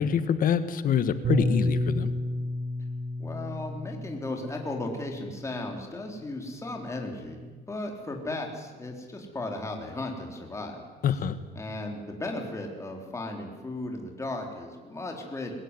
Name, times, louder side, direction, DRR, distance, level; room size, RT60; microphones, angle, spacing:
voice 1, 0.0-2.1 11.0-11.3, left 8 dB, 55° left, 12 dB, 1.6 m, -25 dB
Bass guitar, 1.2-5.8 6.5-7.5, equal, 50° right, 5.4 m, -31 dB
voice 2, 3.2-7.4 7.7-10.8 11.5-15.5, left 2 dB, 15° left, 1 dB, 3.9 m, -35 dB
22.0 x 16.5 x 9.9 m, 1.4 s
cardioid pair, 110°, 17 cm